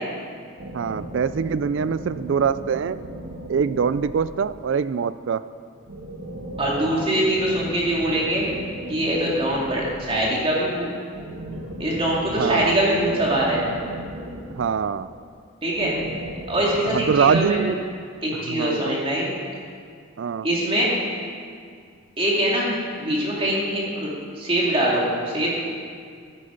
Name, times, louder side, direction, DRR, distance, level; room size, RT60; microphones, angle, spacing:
sound 1, 0.6-4.8 5.9-10.5 11.1-15.1 15.7-17.4, right 1 dB, 75° right, 2.2 m, -36 dB
voice 1, 0.7-3.0 3.5-5.4 12.4-12.8 14.6-15.1 16.9-17.8 18.4-19.0 20.2-20.5, right 6 dB, 55° right, 15 dB, 0.3 m, -23 dB
voice 2, 6.6-8.5 8.9-10.9 11.8-13.6 15.6-15.9 16.5-17.6 18.2-19.3 20.4-20.9 22.2-25.5, right 1 dB, 25° right, -4 dB, 2.6 m, -23 dB
14.0 x 9.6 x 5.1 m, 2.1 s
head